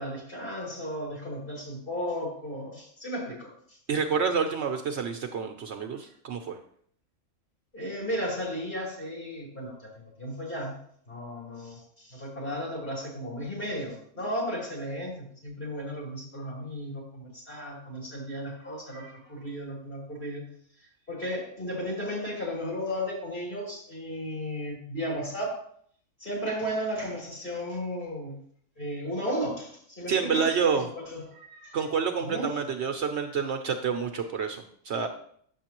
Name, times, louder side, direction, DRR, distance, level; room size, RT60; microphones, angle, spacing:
voice 1, 0.0-3.5 7.7-10.8 11.1-20.5 21.1-25.6 26.2-28.3 28.8-30.8 31.3-31.8 32.2-32.5, equal, 35° left, -4 dB, 3.5 m, -34 dB
voice 2, 3.9-6.6 30.1-30.9 31.7-35.1, right 6 dB, 65° right, 5 dB, 0.9 m, -28 dB
9.3 x 7.0 x 2.9 m, 0.62 s
omnidirectional pair, 1.3 m